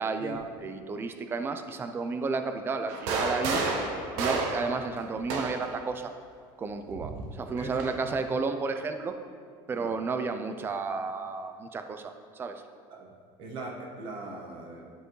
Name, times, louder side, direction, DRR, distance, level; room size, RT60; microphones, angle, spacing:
voice 1, 0.0-3.6 4.2-6.1 6.6-9.1 9.7-12.6, right 4 dB, 20° right, 7 dB, 0.4 m, -32 dB
sound 1, 2.9-5.8 6.9-8.0, right 3 dB, 85° right, 0.9 m, -31 dB
voice 2, 7.6-7.9 9.7-9.9 12.9-13.1 13.4-14.8, right 2 dB, 55° right, 0 dB, 1.4 m, -40 dB
11.0 x 4.6 x 3.2 m, 2.1 s
cardioid pair, 145°, 10 cm